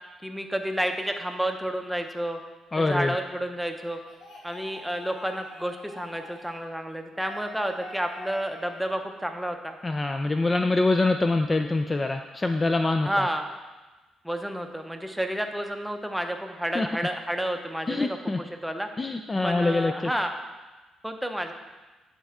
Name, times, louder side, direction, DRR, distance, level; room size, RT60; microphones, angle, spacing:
voice 1, 0.2-2.4 2.8-4.0 4.4-9.8 13.0-13.5 14.2-18.9 19.4-20.4 21.0-21.5, equal, 5° right, 5 dB, 0.7 m, -30 dB
voice 2, 2.7-3.1 9.8-13.2 16.7-16.9 17.9-18.4 19.0-19.9, left 2 dB, 25° left, 6 dB, 0.3 m, -24 dB
sound 1, 3.7-6.6 7.1-8.9, left 1 dB, 75° left, 1.9 m, -45 dB
11.0 x 4.2 x 3.6 m, 1.2 s
cardioid pair, 90°, 0 cm